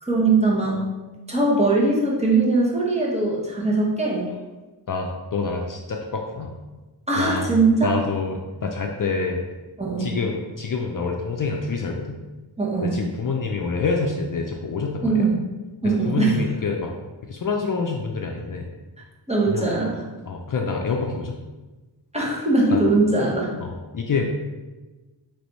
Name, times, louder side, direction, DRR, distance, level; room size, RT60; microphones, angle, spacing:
voice 1, 0.0-0.8 1.3-4.2 7.1-7.9 9.8-10.1 12.6-13.0 15.0-15.3 15.8-16.4 19.3-20.0 22.1-23.5, right 3 dB, 15° right, -5 dB, 1.1 m, -21 dB
voice 2, 4.9-6.5 7.2-7.5 7.8-9.4 10.0-12.2 12.8-15.3 15.8-16.9 17.3-18.6 19.5-19.7 20.3-21.4 22.7-22.8 23.6-24.3, left 4 dB, 50° left, 1 dB, 0.5 m, -27 dB
3.3 x 3.3 x 4.0 m, 1.2 s
wide cardioid pair, 80°, 43 cm